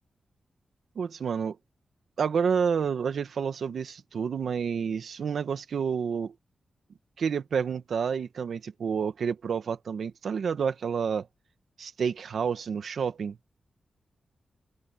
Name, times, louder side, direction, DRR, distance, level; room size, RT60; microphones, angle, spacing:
voice 1, 0.9-1.6 2.2-6.3 7.2-11.3 11.8-13.4, right 6 dB, 70° right, 1.6 m, -29 dB
open air
wide cardioid pair, 140°, 0 cm